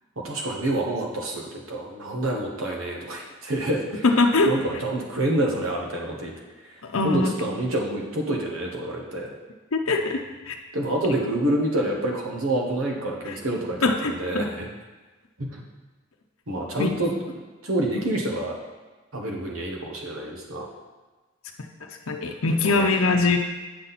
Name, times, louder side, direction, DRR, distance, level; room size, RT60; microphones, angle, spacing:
voice 1, 0.2-4.0 4.5-6.3 7.0-9.3 10.7-14.7 15.4-15.6 16.5-17.1 17.6-18.5 19.1-20.7 22.6-22.9, right 1 dB, 85° right, -1 dB, 1.3 m, -27 dB
voice 2, 4.0-4.5 6.8-7.3 9.7-10.2 10.5-10.6 13.3-13.4 13.8-14.4 16.8-17.0 22.1-23.4, left 3 dB, 85° left, 3 dB, 0.7 m, -22 dB
8.6 x 5.8 x 4.1 m, 1.2 s
head